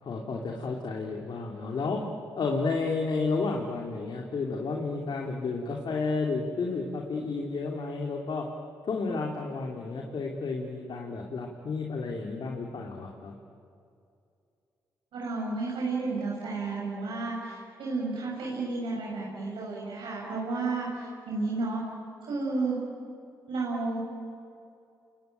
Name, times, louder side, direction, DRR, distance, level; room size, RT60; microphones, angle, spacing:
voice 1, 0.0-2.0 2.4-8.5 8.8-13.3, left 4 dB, 60° left, 1 dB, 3.0 m, -31 dB
voice 2, 15.1-21.8 22.2-22.8 23.5-24.0, right 3 dB, 80° right, -4 dB, 6.6 m, -32 dB
28.5 x 22.5 x 9.2 m, 2.5 s
supercardioid pair, 50°, 9 cm